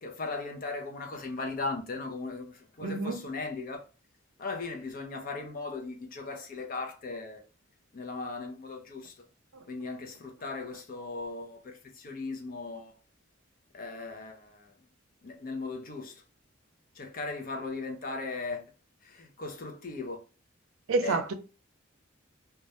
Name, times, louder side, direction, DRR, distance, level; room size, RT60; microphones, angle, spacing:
voice 1, 0.0-3.9 4.4-7.4 7.9-9.2 9.7-13.0 13.7-14.7 15.2-16.2 17.0-18.6 19.0-20.2 21.0-21.2, left 3 dB, 45° left, 0.5 m, -38 dB
voice 2, 2.8-3.3 20.9-21.3, right 3 dB, 90° right, 0.4 m, -28 dB
2.3 x 2.1 x 2.7 m
head